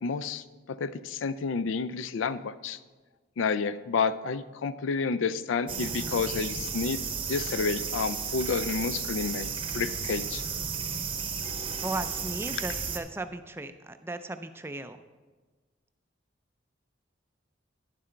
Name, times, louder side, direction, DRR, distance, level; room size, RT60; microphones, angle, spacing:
voice 1, 0.0-0.4 0.7-2.8 3.4-7.0 7.3-10.4, left 5 dB, 80° left, 14 dB, 0.4 m, -30 dB
sound 1, 5.7-13.0, right 6 dB, 25° right, 0.7 m, -33 dB
voice 2, 11.8-15.0, right 2 dB, 10° right, 9 dB, 0.3 m, -36 dB
10.5 x 7.5 x 4.4 m, 1.3 s
head